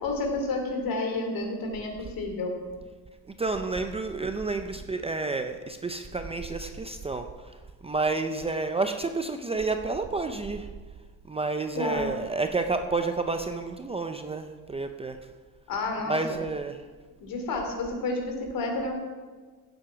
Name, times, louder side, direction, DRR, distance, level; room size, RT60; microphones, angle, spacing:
voice 1, 0.0-2.5 11.7-12.1 15.7-16.4 17.2-18.9, left 2 dB, 65° left, 3 dB, 3.0 m, -30 dB
voice 2, 3.4-7.5 7.8-10.7 11.3-15.2 16.1-16.8, right 3 dB, 15° right, 6 dB, 0.4 m, -30 dB
16.5 x 7.9 x 5.8 m, 1.4 s
cardioid pair, 180°, 37 cm